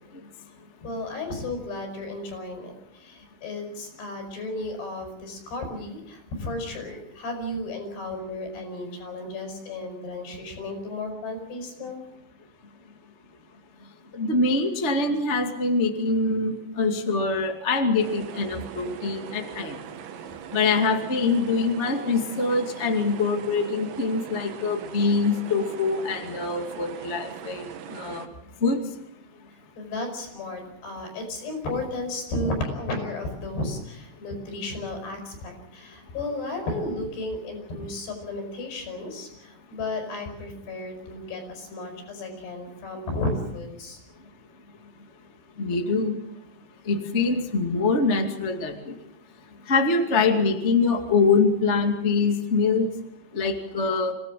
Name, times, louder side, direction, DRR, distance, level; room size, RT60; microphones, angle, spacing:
voice 1, 0.8-12.0 29.8-44.0, left 2 dB, 60° left, 4 dB, 7.3 m, -33 dB
voice 2, 14.1-19.8 20.5-28.3 28.6-28.8 45.6-46.2 46.8-48.9 49.7-52.9 53.3-54.1, left 4 dB, 35° left, 4 dB, 1.1 m, -24 dB
sound 1, 18.0-28.3, right 8 dB, 70° right, 3.7 m, -40 dB
26.0 x 17.5 x 7.5 m, 0.85 s
omnidirectional pair, 5.5 m